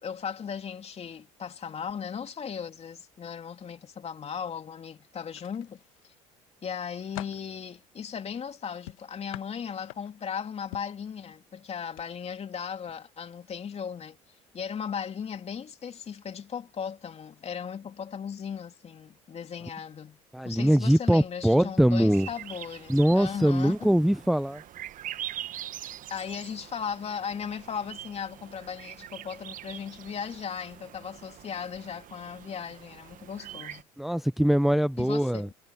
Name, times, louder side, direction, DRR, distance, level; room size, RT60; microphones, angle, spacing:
voice 1, 0.0-5.8 6.6-14.2 14.5-20.2 20.4-23.9 26.1-33.9 35.0-35.5, left 7 dB, 40° left, 3.1 m, -37 dB
sound 1, 5.3-6.1 6.6-7.5 8.9-10.3 10.7-11.0 11.9-12.1 12.4-12.6, left 18 dB, 80° left, 1.6 m, -44 dB
voice 2, 20.3-22.3 22.9-24.6 34.0-35.5, equal, ahead, 0.6 m, -22 dB
sound 2, 22.1-33.8, right 12 dB, 50° right, 1.1 m, -43 dB
hypercardioid pair, 70°, 17 cm